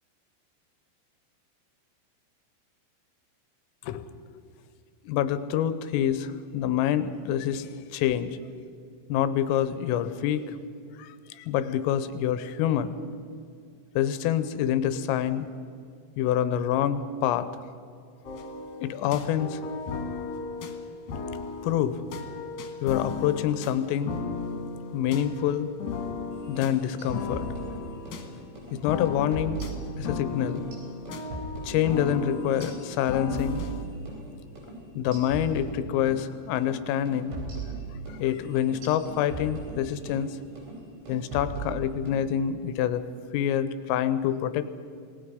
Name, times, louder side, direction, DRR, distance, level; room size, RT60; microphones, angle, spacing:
voice 1, 5.1-8.4 9.1-10.6 11.0-13.0 14.0-15.5 16.2-17.5 18.8-19.6 21.6-22.0 22.8-24.1 24.9-25.7 26.5-27.5 28.7-29.6 30.0-30.6 31.6-33.6 35.0-37.4 38.2-40.4 41.1-43.0 43.3-44.7, left 10 dB, 90° left, 12 dB, 3.4 m, -26 dB
sound 1, 18.2-33.8, left 5 dB, 60° left, 2.5 m, -36 dB
sound 2, 26.5-28.2 28.6-28.8 29.1-30.2 30.6-34.3 34.6-34.7 35.1-36.2 36.6-36.8 37.1-40.2 40.6-40.8 41.1-42.2, right 3 dB, 60° right, 6.2 m, -38 dB
26.5 x 19.0 x 5.2 m, 2.3 s
omnidirectional pair, 5.9 m